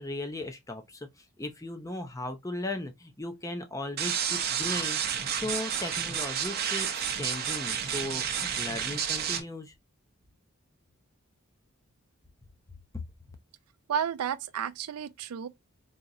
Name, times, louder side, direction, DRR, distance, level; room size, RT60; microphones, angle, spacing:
voice 1, 0.0-5.0 5.3-9.7, left 1 dB, 15° left, 0.5 m, -37 dB
sound 1, 4.0-9.4, right 8 dB, 45° right, 0.6 m, -31 dB
voice 2, 13.9-15.5, right 8 dB, 90° right, 0.4 m, -32 dB
3.9 x 2.9 x 2.5 m
head